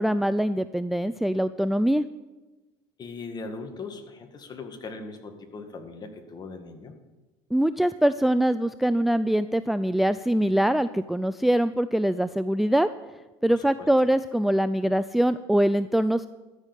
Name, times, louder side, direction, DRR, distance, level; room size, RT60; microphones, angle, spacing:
voice 1, 0.0-2.0 7.5-12.9 13.4-16.3, right 1 dB, ahead, 13 dB, 0.3 m, -23 dB
voice 2, 3.0-6.9 13.5-13.9, left 3 dB, 35° left, 6 dB, 1.9 m, -39 dB
13.0 x 6.3 x 8.9 m, 1.1 s
supercardioid pair, 100°, 12 cm